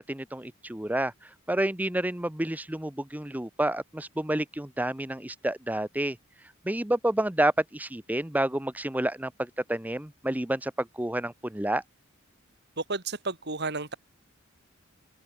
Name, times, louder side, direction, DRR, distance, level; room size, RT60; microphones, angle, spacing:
voice 1, 0.0-6.2 6.6-11.8, right 1 dB, 10° right, 0.8 m, -29 dB
voice 2, 12.8-13.9, right 3 dB, 55° right, 3.2 m, -32 dB
head